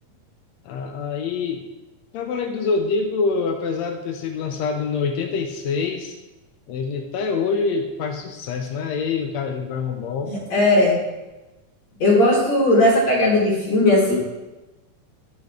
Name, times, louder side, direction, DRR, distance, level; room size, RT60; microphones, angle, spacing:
voice 1, 0.7-1.6 2.1-6.2 6.7-10.3, left 4 dB, 80° left, 4 dB, 1.6 m, -25 dB
voice 2, 10.3-10.9 12.0-14.2, left 1 dB, 55° left, -5 dB, 2.9 m, -17 dB
12.0 x 5.3 x 3.6 m, 1.1 s
omnidirectional pair, 3.8 m